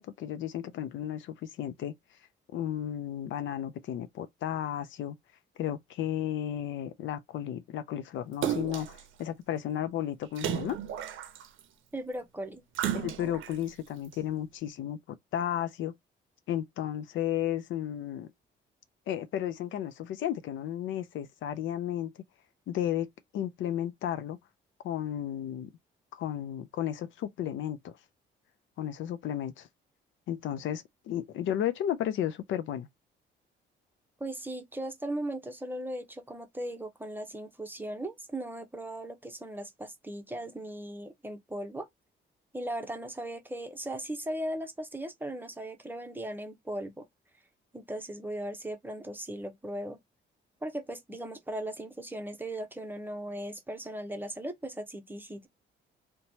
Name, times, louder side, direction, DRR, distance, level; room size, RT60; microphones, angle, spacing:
voice 1, 0.0-1.9 2.5-5.2 5.6-10.8 12.9-15.0 15.3-15.9 16.5-18.3 19.1-22.2 22.7-23.1 23.3-24.4 24.8-25.7 26.1-27.9 28.8-29.7 30.3-32.9, left 11 dB, 75° left, 0.5 m, -33 dB
Splash splatter, 8.4-9.0 10.4-11.6 12.7-13.5 14.1-14.2, right 10 dB, 80° right, 0.6 m, -33 dB
voice 2, 11.9-12.6 34.2-41.9 42.5-47.0 47.7-50.0 50.6-55.5, right 1 dB, 10° right, 0.7 m, -38 dB
3.0 x 2.2 x 2.7 m
cardioid pair, 90°, 20 cm